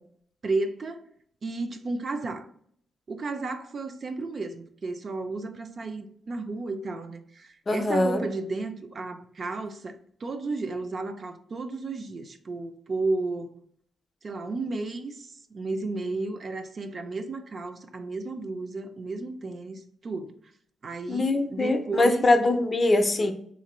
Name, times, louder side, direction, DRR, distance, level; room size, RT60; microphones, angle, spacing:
voice 1, 0.4-1.0 1.4-2.5 3.1-13.5 14.2-20.3 20.8-22.3, right 3 dB, 45° right, 0.4 m, -33 dB
voice 2, 7.7-8.3 21.1-23.3, left 2 dB, 35° left, 0.4 m, -23 dB
3.5 x 2.5 x 3.0 m
cardioid pair, 110°, 0 cm